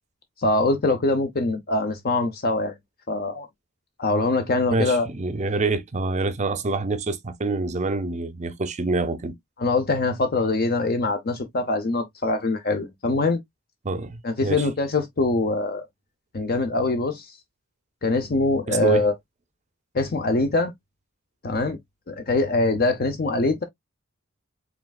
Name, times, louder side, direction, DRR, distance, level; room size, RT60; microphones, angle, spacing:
voice 1, 0.4-2.7 3.1-3.5 4.0-5.1 9.6-13.4 14.2-15.8 16.3-17.3 18.0-19.1 19.9-20.7 21.4-21.8 22.1-23.6, left 2 dB, 45° left, 0.7 m, -23 dB
voice 2, 4.7-9.4 13.8-14.7 18.7-19.0, right 3 dB, 35° right, 0.6 m, -26 dB
5.0 x 3.3 x 2.3 m
head